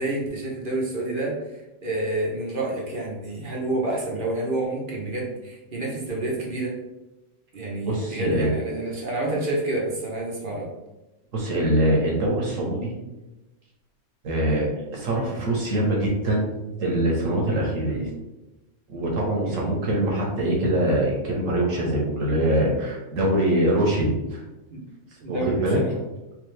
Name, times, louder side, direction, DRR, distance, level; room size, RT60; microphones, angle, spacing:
voice 1, 0.0-6.7 7.5-10.7 17.9-18.1 19.4-19.7 24.7-24.9 25.2-26.0, right 2 dB, 45° right, -3 dB, 1.0 m, -29 dB
voice 2, 7.8-8.5 11.3-12.9 14.2-16.5 16.8-18.0 18.9-24.4 25.3-25.8, right 1 dB, 80° right, -2 dB, 1.5 m, -23 dB
3.5 x 3.3 x 3.3 m, 1.0 s
omnidirectional pair, 1.3 m